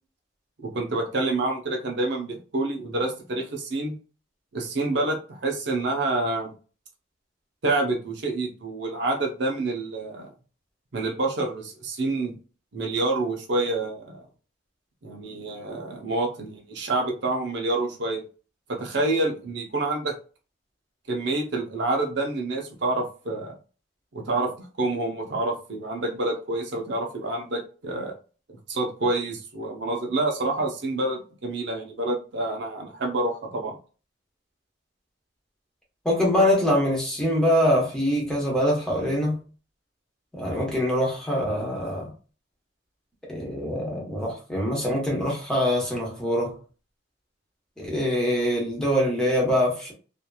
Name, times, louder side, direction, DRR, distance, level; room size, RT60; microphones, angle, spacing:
voice 1, 0.6-3.9 4.5-6.5 7.6-10.3 10.9-12.3 12.7-14.2 15.0-18.2 18.7-20.1 21.1-23.5 24.1-24.5 24.8-28.1 28.7-33.8, right 2 dB, 60° right, 0.6 m, -27 dB
voice 2, 36.0-39.4 40.3-42.1 43.3-46.6 47.8-49.9, equal, 5° left, 0.9 m, -24 dB
2.9 x 2.5 x 2.2 m
head